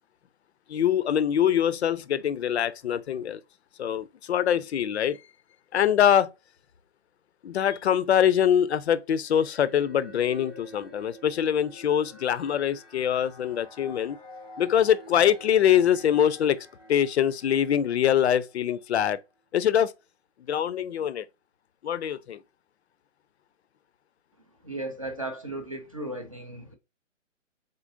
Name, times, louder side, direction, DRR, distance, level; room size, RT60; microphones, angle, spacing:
voice 1, 0.7-3.4 3.8-5.2 5.7-6.3 7.4-14.2 14.6-19.2 19.5-19.9 20.5-21.3 21.8-22.4, left 9 dB, 60° left, 0.5 m, -24 dB
sound 1, 9.2-18.7, equal, ahead, 0.8 m, -49 dB
voice 2, 24.6-26.8, right 1 dB, 30° right, 0.4 m, -35 dB
4.0 x 3.7 x 2.6 m
hypercardioid pair, 155°, 38 cm